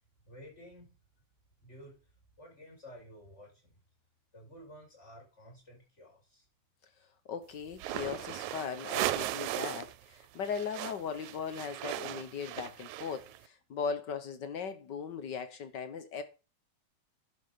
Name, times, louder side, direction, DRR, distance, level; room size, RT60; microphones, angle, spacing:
voice 1, 0.3-0.9 1.6-1.9 2.4-3.7 4.3-6.5, equal, 20° left, 5.4 m, -52 dB
voice 2, 7.3-16.2, left 6 dB, 65° left, 1.0 m, -38 dB
sound 1, 7.7-10.0 10.2-13.4, right 15 dB, 85° right, 2.1 m, -37 dB
11.0 x 5.6 x 6.7 m
omnidirectional pair, 3.4 m